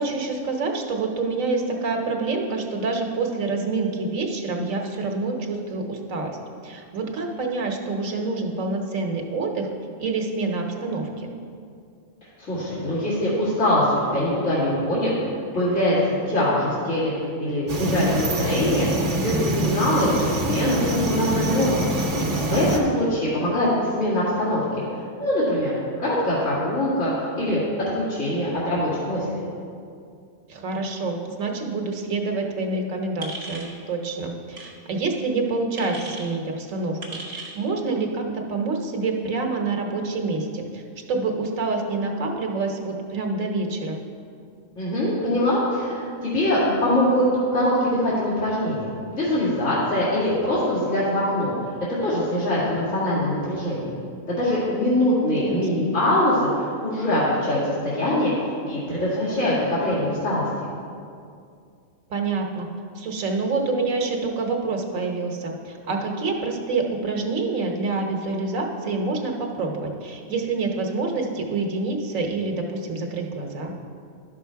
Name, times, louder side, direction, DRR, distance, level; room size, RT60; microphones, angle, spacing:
voice 1, 0.0-6.4 6.6-9.7 10.0-11.3 22.2-22.7 30.5-40.8 41.1-44.0 55.3-55.9 62.1-62.7 62.9-73.7, right 3 dB, 90° right, 2 dB, 1.4 m, -27 dB
voice 2, 12.4-15.1 15.5-16.0 16.3-17.1 17.4-18.9 19.1-21.9 22.4-24.6 25.2-25.7 26.0-27.6 27.9-29.4 44.8-47.3 47.5-51.5 52.0-53.9 54.3-58.3 58.7-60.4, left 1 dB, 70° left, -11 dB, 2.6 m, -23 dB
sound 1, 17.7-22.8, right 1 dB, 65° right, 1.3 m, -25 dB
sound 2, 33.2-33.7 34.5-34.7 35.8-36.3 37.0-37.6, right 3 dB, 45° right, 1.6 m, -36 dB
11.0 x 6.1 x 4.6 m, 2.3 s
omnidirectional pair, 1.3 m